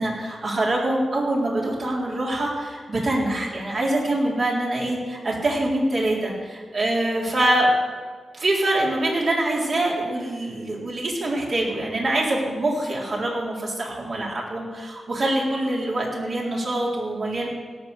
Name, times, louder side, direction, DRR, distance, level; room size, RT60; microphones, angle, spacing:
voice 1, 0.0-7.7 8.3-17.5, right 1 dB, 60° right, -3 dB, 4.0 m, -24 dB
17.5 x 6.4 x 6.8 m, 1.5 s
cardioid pair, 55°, 0 cm